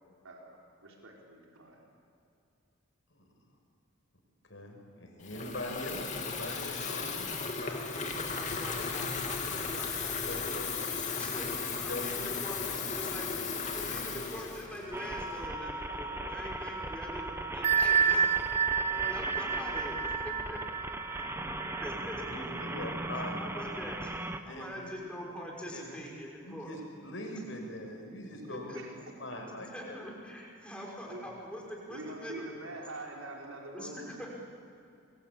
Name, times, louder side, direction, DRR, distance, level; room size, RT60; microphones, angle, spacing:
voice 1, 0.2-1.8 28.7-28.9 31.0-31.3 31.9-34.3, right 2 dB, 85° right, -1 dB, 5.0 m, -45 dB
voice 2, 4.5-7.9 10.2-10.7 11.9-12.1 16.4-16.5 22.3-23.4 24.4-25.0 25.7-26.0 26.4-28.7 29.2-30.0, left 1 dB, 65° left, 2 dB, 6.1 m, -42 dB
Water tap faucet / Fill (with liquid), 5.2-15.5, left 5 dB, 35° left, 2.8 m, -36 dB
voice 3, 7.6-11.5 11.8-18.3 19.0-20.6 21.8-22.1 23.4-24.1 24.4-26.7 28.5-28.8 29.5-32.4 33.7-34.3, equal, 5° left, -2 dB, 5.8 m, -44 dB
sound 1, 14.9-24.4, right 1 dB, 10° right, 1.0 m, -38 dB
Bell, 17.6-23.1, right 7 dB, 30° right, 0.6 m, -30 dB
27.5 x 23.5 x 8.7 m, 2.6 s
head